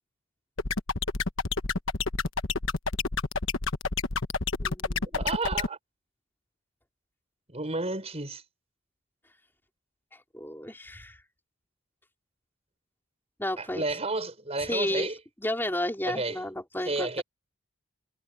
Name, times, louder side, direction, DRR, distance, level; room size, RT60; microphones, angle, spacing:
sound 1, 0.6-5.7, left 4 dB, 65° left, 1.3 m, -28 dB
voice 1, 4.6-5.1 10.3-11.2 13.4-13.8 14.6-15.1 15.4-17.2, left 1 dB, 10° left, 4.1 m, -32 dB
voice 2, 5.1-5.8 7.5-8.4 13.6-15.2 16.1-16.4 16.9-17.2, right 2 dB, 30° right, 5.6 m, -31 dB
head